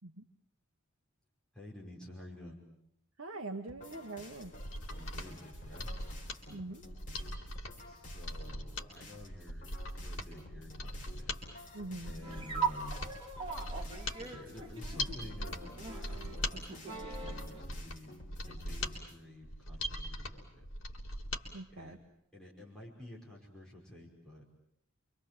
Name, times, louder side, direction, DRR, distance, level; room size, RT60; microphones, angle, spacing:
voice 1, 1.5-2.6 4.9-6.0 7.8-11.4 12.0-13.2 14.3-20.7 21.7-22.0 22.3-24.5, left 1 dB, 5° left, -3 dB, 5.2 m, -51 dB
voice 2, 3.2-4.5 6.5-6.8 11.7-12.1 21.5-22.0, right 2 dB, 65° right, 3 dB, 1.3 m, -43 dB
sound 1, 3.7-19.2, left 2 dB, 40° left, 4.0 m, -54 dB
Mechanisms, 4.4-21.5 21.8-21.9, left 1 dB, 65° left, 3.6 m, -41 dB
sound 2, 12.2-17.6, right 5 dB, 25° right, 3.2 m, -40 dB
28.0 x 24.5 x 7.6 m, 0.73 s
head